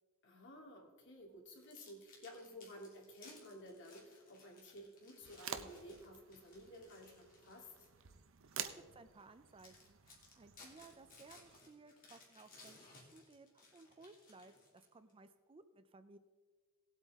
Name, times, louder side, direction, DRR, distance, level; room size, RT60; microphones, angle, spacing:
voice 1, 0.2-7.7, equal, 60° left, 0 dB, 2.6 m, -54 dB
sound 1, 1.5-8.0 8.5-8.7 9.2-9.3 9.6-15.1, left 3 dB, 40° left, 2.5 m, -62 dB
sound 2, 5.2-11.6, right 8 dB, 65° right, 0.7 m, -50 dB
voice 2, 8.4-16.2, right 3 dB, 25° right, 11 dB, 0.5 m, -60 dB
18.5 x 8.2 x 3.6 m, 1.4 s
head